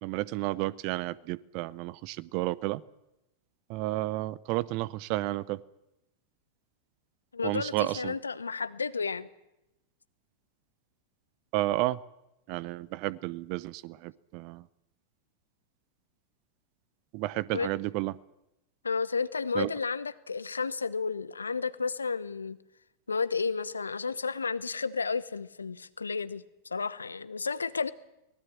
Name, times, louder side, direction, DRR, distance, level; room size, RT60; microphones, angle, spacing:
voice 1, 0.0-2.8 3.7-5.6 7.4-8.1 11.5-12.0 12.5-14.7 17.1-18.1 19.5-19.7, right 18 dB, 45° right, 22 dB, 0.7 m, -31 dB
voice 2, 7.3-9.3 17.5-17.7 18.8-22.6 23.1-27.9, left 5 dB, 75° left, 16 dB, 1.0 m, -32 dB
24.0 x 19.5 x 7.5 m, 0.89 s
figure-of-eight pair, 90°, 0 cm